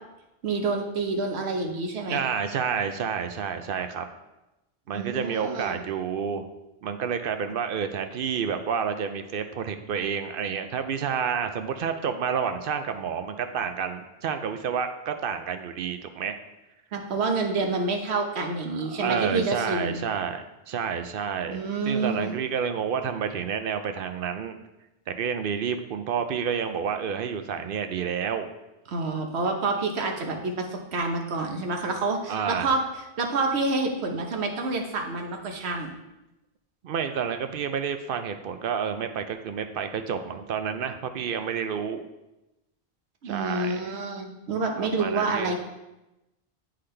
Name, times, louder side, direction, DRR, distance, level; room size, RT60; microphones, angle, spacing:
voice 1, 0.4-2.2 4.9-5.8 16.9-20.0 21.5-22.3 28.9-32.8 33.2-35.9 43.2-45.5, right 3 dB, 90° right, 3 dB, 1.2 m, -28 dB
voice 2, 2.1-4.1 4.9-6.5 6.8-16.4 18.7-24.6 25.1-28.5 32.3-32.8 36.8-42.1 43.2-43.9 44.8-45.5, right 7 dB, 65° right, 8 dB, 0.7 m, -29 dB
10.0 x 3.8 x 3.3 m, 0.97 s
omnidirectional pair, 1.1 m